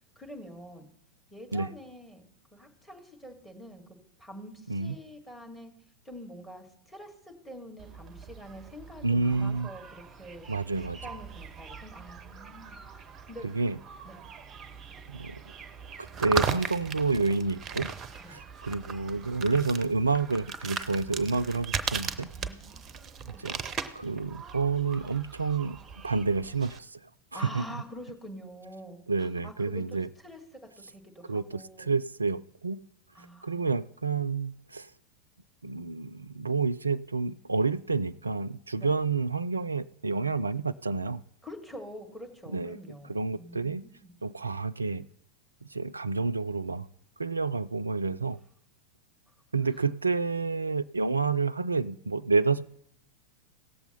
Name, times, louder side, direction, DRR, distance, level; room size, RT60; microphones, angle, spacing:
voice 1, 0.1-0.9 1.3-3.8 4.2-5.7 6.0-10.5 11.0-12.8 13.3-13.5 14.0-14.2 18.2-18.4 22.1-23.5 27.3-30.6 30.9-31.9 33.1-33.7 38.8-38.9 41.4-44.1 49.7-49.8, equal, 5° left, 1.7 m, -46 dB
sound 1, 7.8-26.8, right 6 dB, 25° right, 0.6 m, -39 dB
voice 2, 9.0-9.7 10.5-11.0 13.4-13.8 15.1-15.4 16.0-17.9 18.3-22.3 23.3-23.6 23.9-27.0 27.3-27.7 29.1-30.1 31.3-32.8 33.4-34.9 35.6-41.2 42.5-42.8 43.1-43.8 44.2-45.1 45.7-46.9 47.2-48.4 49.5-52.7, right 4 dB, 80° right, 0.3 m, -29 dB
17.0 x 7.0 x 4.2 m
figure-of-eight pair, 90°, 0 cm